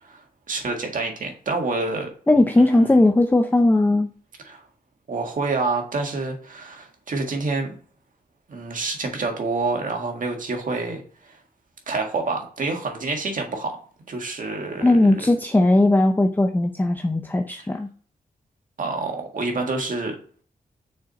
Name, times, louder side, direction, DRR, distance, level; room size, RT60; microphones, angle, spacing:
voice 1, 0.0-2.1 2.6-3.0 4.5-4.6 5.1-7.8 8.5-11.4 11.9-13.8 14.1-15.1 18.8-20.2, right 3 dB, 60° right, 3 dB, 1.7 m, -28 dB
voice 2, 2.3-4.1 14.8-17.9, left 2 dB, 10° left, 5 dB, 0.5 m, -18 dB
6.3 x 4.3 x 4.2 m, 0.44 s
cardioid pair, 90°, 16 cm